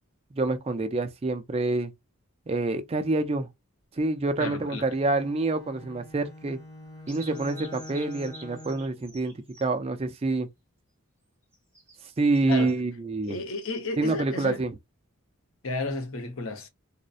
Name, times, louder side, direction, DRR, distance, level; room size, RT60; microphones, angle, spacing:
voice 1, 0.3-1.9 2.5-3.5 4.0-6.6 7.1-9.3 9.6-10.5 12.2-13.4 14.0-14.7, right 2 dB, 25° right, 0.4 m, -27 dB
Bowed string instrument, 4.2-9.0, left 2 dB, 15° left, 0.9 m, -45 dB
voice 2, 4.4-4.9 12.4-12.7 13.3-14.6 15.6-16.7, left 3 dB, 60° left, 0.7 m, -32 dB
sound 1, 7.1-9.7 11.5-12.8, right 2 dB, 10° right, 1.3 m, -49 dB
2.7 x 2.0 x 2.3 m
head